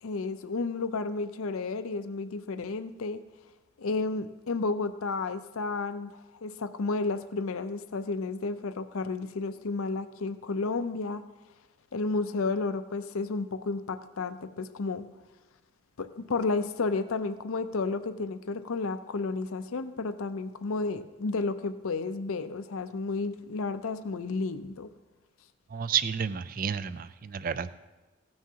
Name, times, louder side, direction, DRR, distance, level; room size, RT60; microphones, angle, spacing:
voice 1, 0.0-3.2 3.8-11.2 11.9-15.0 16.0-24.9, left 3 dB, 75° left, 10 dB, 0.5 m, -32 dB
voice 2, 25.7-27.7, right 7 dB, 40° right, 14 dB, 0.3 m, -31 dB
16.5 x 9.5 x 2.8 m, 1.2 s
head